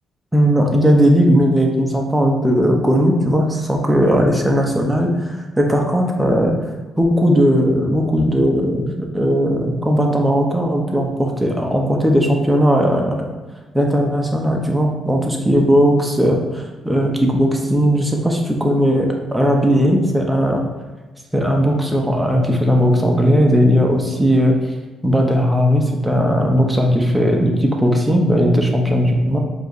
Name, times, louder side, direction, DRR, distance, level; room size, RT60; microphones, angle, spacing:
voice 1, 0.3-6.6 7.0-13.2 13.7-20.6 21.3-24.6 25.0-29.4, equal, 10° right, 1 dB, 0.7 m, -17 dB
4.6 x 2.5 x 3.0 m, 1.3 s
cardioid pair, 90°, 0 cm